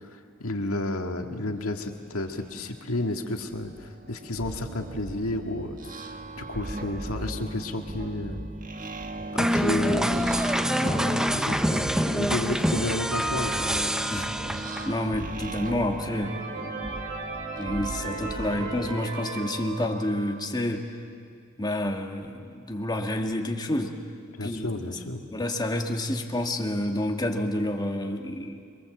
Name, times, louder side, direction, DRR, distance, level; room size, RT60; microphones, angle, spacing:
voice 1, 0.1-8.4 9.3-10.3 10.8-13.6 24.4-25.2, left 2 dB, 85° left, 4 dB, 2.0 m, -32 dB
sound 1, 1.9-2.0 2.4-18.9, right 2 dB, 40° right, 1.4 m, -38 dB
sound 2, 9.4-15.0, equal, 5° right, 0.7 m, -26 dB
sound 3, 13.3-14.9 15.5-15.6 15.9-20.5, right 3 dB, 60° right, 5.7 m, -37 dB
voice 2, 14.9-16.4 17.6-20.9 21.6-24.0 24.4-24.7 25.3-28.6, left 1 dB, 20° left, 2 dB, 1.9 m, -29 dB
28.0 x 23.0 x 7.9 m, 2.3 s
head